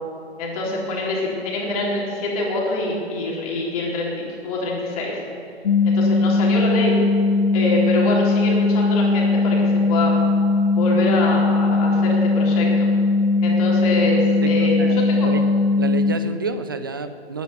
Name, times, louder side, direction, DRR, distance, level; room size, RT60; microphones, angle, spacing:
voice 1, 0.4-5.2 5.8-7.0 7.5-10.2 10.7-12.9 13.4-15.3, left 2 dB, 35° left, -3 dB, 3.6 m, -25 dB
sound 1, 5.6-16.1, left 3 dB, 55° left, 1.0 m, -19 dB
voice 2, 14.4-15.4 15.8-17.4, right 4 dB, 20° right, 10 dB, 0.4 m, -29 dB
19.0 x 9.5 x 5.3 m, 2.7 s
figure-of-eight pair, 135°, 33 cm